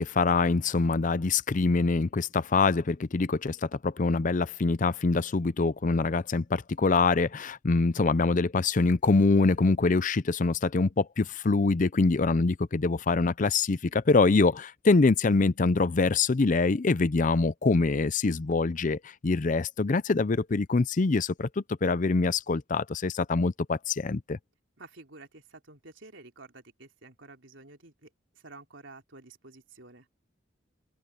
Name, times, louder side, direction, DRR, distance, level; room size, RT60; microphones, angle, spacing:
voice 1, 0.0-24.4, left 3 dB, 40° left, 0.5 m, -25 dB
voice 2, 24.8-28.1 28.3-30.1, right 3 dB, 75° right, 3.7 m, -50 dB
open air
head